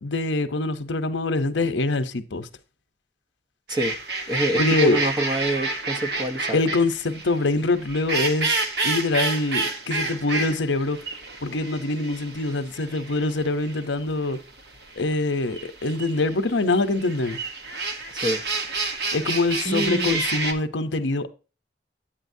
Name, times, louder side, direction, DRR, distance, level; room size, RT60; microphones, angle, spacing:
voice 1, 0.0-2.5 4.5-5.0 6.5-8.6 8.8-11.0 11.4-14.4 15.0-17.4 19.1-21.3, left 2 dB, 90° left, 0.9 m, -24 dB
sound 1, 3.7-20.5, right 3 dB, 65° right, 1.2 m, -29 dB
voice 2, 4.3-6.6 18.1-18.4 19.6-20.2, right 1 dB, 25° right, 0.9 m, -26 dB
8.9 x 8.8 x 2.7 m
head